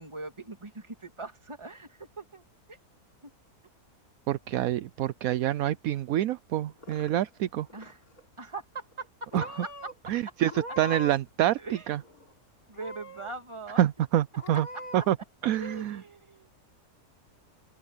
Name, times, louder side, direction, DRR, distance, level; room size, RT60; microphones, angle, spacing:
voice 1, 0.0-2.4 2.7-2.8 7.7-8.0 8.4-10.1 11.6-12.0 12.7-13.8 15.0-15.1 15.6-16.6, right 3 dB, 20° right, 2.3 m, -41 dB
voice 2, 4.3-7.7 9.3-9.4 10.1-11.6 11.9-12.0 13.8-14.7 14.9-15.2 15.4-16.0, right 12 dB, 75° right, 1.0 m, -26 dB
Purr / Meow, 6.5-7.4 7.7-8.2 8.9-9.1 9.3-9.9 10.4-11.3 11.6-12.3 12.7-13.3 13.8-13.9 14.3-15.1, left 1 dB, 70° left, 3.9 m, -43 dB
open air
omnidirectional pair, 1.6 m